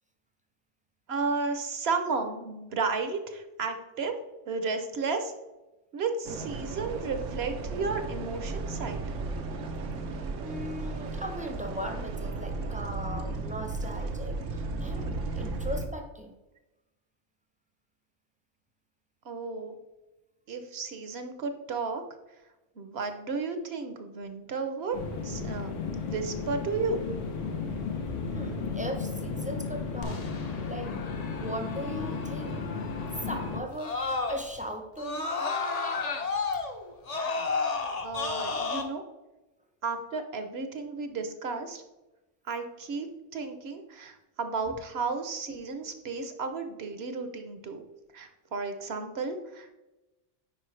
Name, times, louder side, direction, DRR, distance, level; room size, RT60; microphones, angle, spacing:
voice 1, 1.1-4.1 4.5-5.3 5.9-9.1 19.2-19.7 20.5-22.0 22.8-27.1 38.0-39.0 39.8-41.8 42.5-47.8 48.1-49.7, right 4 dB, 60° right, 7 dB, 1.0 m, -33 dB
sound 1, 6.2-15.9, right 3 dB, 85° right, 1.1 m, -35 dB
voice 2, 10.4-16.3 28.0-30.2 30.7-31.0 31.3-32.7 33.3-35.3 44.6-44.7, equal, 10° right, 3 dB, 0.6 m, -38 dB
sound 2, 24.9-33.6, left 4 dB, 85° left, 1.4 m, -34 dB
Screaming, 30.0-34.6 35.0-38.8, left 4 dB, 40° left, 0.7 m, -33 dB
9.9 x 4.4 x 3.2 m, 1.0 s
omnidirectional pair, 1.2 m